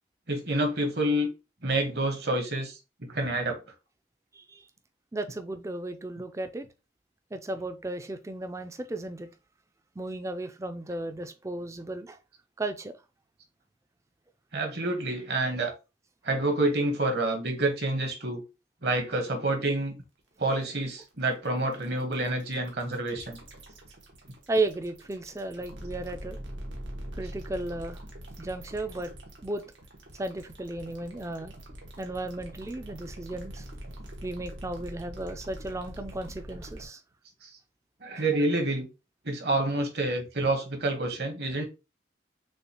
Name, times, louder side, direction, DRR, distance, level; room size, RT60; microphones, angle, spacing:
voice 1, 0.3-1.3 1.6-2.8 3.1-3.6 14.5-15.7 16.2-18.4 18.8-20.0 20.4-23.4 37.4-37.5 38.0-38.9 39.2-41.7, right 2 dB, 60° right, 1.2 m, -28 dB
voice 2, 4.3-4.6 5.1-6.6 7.3-9.3 10.0-12.2 12.6-12.9 24.5-26.4 27.1-28.0 28.4-29.1 29.4-29.6 30.2-31.5 32.0-33.7 34.2-37.0, right 2 dB, 15° right, 0.4 m, -34 dB
sound 1, 20.2-36.9, right 1 dB, 90° right, 1.4 m, -43 dB
6.3 x 2.4 x 2.9 m
head